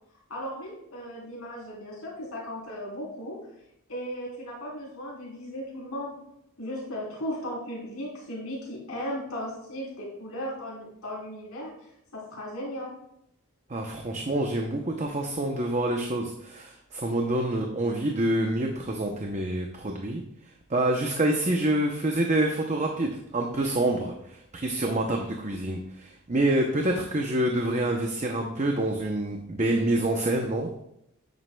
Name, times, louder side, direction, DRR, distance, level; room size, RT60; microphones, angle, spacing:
voice 1, 0.3-3.4 3.9-6.1 6.6-11.9 12.1-12.9, equal, 85° left, -5 dB, 3.6 m, -36 dB
voice 2, 13.7-20.2 20.7-30.7, right 1 dB, 35° right, 2 dB, 0.7 m, -27 dB
9.4 x 9.3 x 2.3 m, 0.77 s
head